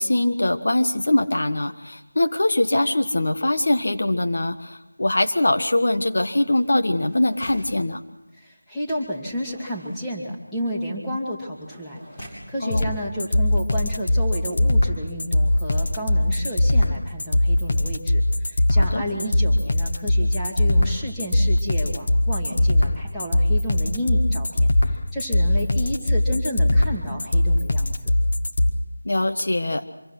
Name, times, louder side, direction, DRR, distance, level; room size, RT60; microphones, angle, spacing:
voice 1, 0.0-8.0 12.6-12.9 18.7-19.0 29.0-29.8, left 1 dB, 60° left, 6 dB, 1.5 m, -22 dB
sound 1, 6.5-7.8 8.9-12.5 13.3-13.4 13.7-14.0, equal, 20° left, 6.4 m, -46 dB
voice 2, 8.4-28.1, equal, 5° left, -6 dB, 2.4 m, -31 dB
sound 2, 12.7-28.7, left 1 dB, 45° left, 1.6 m, -20 dB
26.0 x 23.0 x 6.1 m, 0.94 s
figure-of-eight pair, 170°, 0 cm